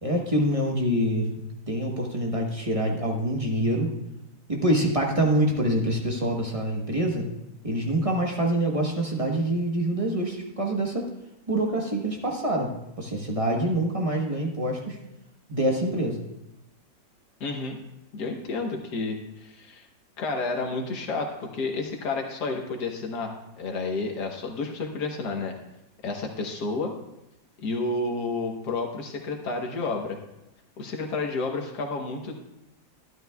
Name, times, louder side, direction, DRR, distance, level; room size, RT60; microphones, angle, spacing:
voice 1, 0.0-3.9 4.5-7.3 7.6-11.1 11.5-12.7 13.0-15.0 15.5-16.2, right 1 dB, 25° right, 0 dB, 1.0 m, -25 dB
voice 2, 17.4-17.8 18.1-19.8 20.2-25.5 26.0-26.9 27.6-30.2 30.8-32.4, left 3 dB, 80° left, 2 dB, 1.7 m, -30 dB
12.5 x 11.5 x 2.3 m, 0.89 s
omnidirectional pair, 1.8 m